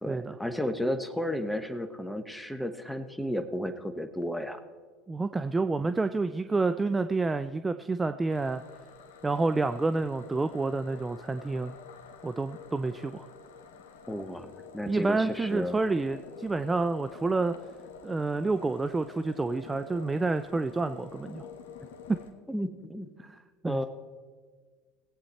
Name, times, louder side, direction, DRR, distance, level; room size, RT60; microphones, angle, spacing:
voice 1, 0.0-4.6 14.1-15.8 22.5-23.1 23.6-23.9, equal, 5° left, 9 dB, 1.1 m, -33 dB
voice 2, 5.1-8.6 9.2-11.7 12.2-13.3 14.8-17.5 18.0-21.5 22.1-22.2 23.2-23.9, right 3 dB, 20° right, 11 dB, 0.4 m, -29 dB
sound 1, 8.3-22.3, left 6 dB, 75° left, 1.3 m, -48 dB
17.5 x 8.5 x 4.3 m, 1.5 s
hypercardioid pair, 75°, 0 cm